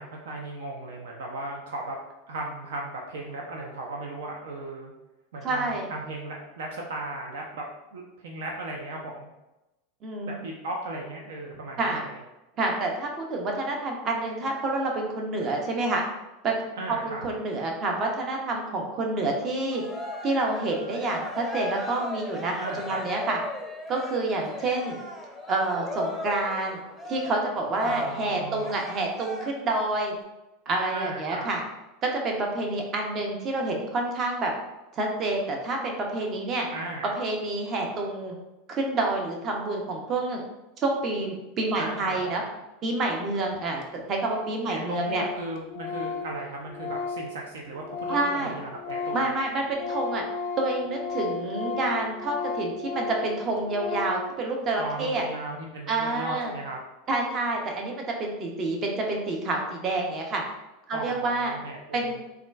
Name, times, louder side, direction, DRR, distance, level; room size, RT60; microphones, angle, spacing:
voice 1, 0.0-2.0 2.3-4.9 5.3-7.6 7.9-9.3 10.3-12.2 16.8-17.3 22.6-23.0 27.8-28.8 30.9-31.5 36.7-37.1 41.7-42.3 44.7-49.2 54.8-56.8 60.9-62.2, right 2 dB, 75° right, 0 dB, 0.4 m, -36 dB
voice 2, 5.4-5.9 10.0-10.3 11.8-12.0 12.6-16.0 16.4-16.6 16.9-19.8 20.2-23.4 23.9-25.0 25.5-30.1 30.7-31.6 32.0-34.5 34.9-36.7 37.0-38.3 38.7-40.4 40.8-42.4 42.8-45.3 48.1-48.5 49.1-50.2 50.6-55.2 55.9-56.5 57.1-57.9 58.2-60.4 60.9-61.5 61.9-62.1, right 2 dB, 40° right, 1 dB, 0.7 m, -28 dB
Cheering, 19.7-29.8, left 1 dB, 5° left, 0.6 m, -36 dB
Organ, 43.2-43.3 43.5-43.6 43.8-43.9 44.2-44.6 44.8-48.4 48.7-54.4, left 4 dB, 55° left, 0.4 m, -34 dB
3.6 x 2.3 x 2.3 m, 0.98 s
hypercardioid pair, 95°, 0 cm